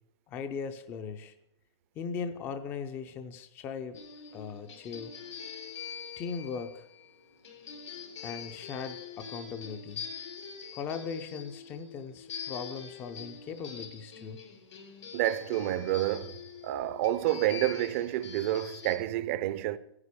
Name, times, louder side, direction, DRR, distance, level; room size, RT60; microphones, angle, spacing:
voice 1, 0.3-1.3 2.0-4.0 4.3-5.1 6.2-6.9 8.2-10.0 10.7-14.4, left 6 dB, 15° left, 0.5 m, -39 dB
sound 1, 3.9-19.0, left 7 dB, 90° left, 3.7 m, -44 dB
voice 2, 15.1-16.3 16.6-19.8, right 14 dB, 30° right, 0.6 m, -29 dB
16.0 x 9.6 x 8.4 m
hypercardioid pair, 175°, 15 cm